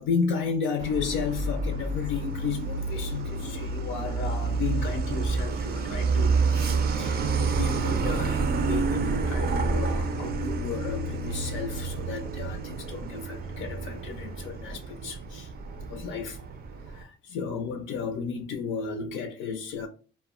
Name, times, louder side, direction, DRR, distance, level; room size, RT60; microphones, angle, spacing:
voice 1, 0.0-15.5 15.9-16.4 16.9-19.9, left 6 dB, 85° left, 0.4 m, -33 dB
Truck, 0.8-17.0, right 4 dB, 50° right, 0.4 m, -29 dB
2.1 x 2.1 x 3.5 m
cardioid pair, 90°, 20 cm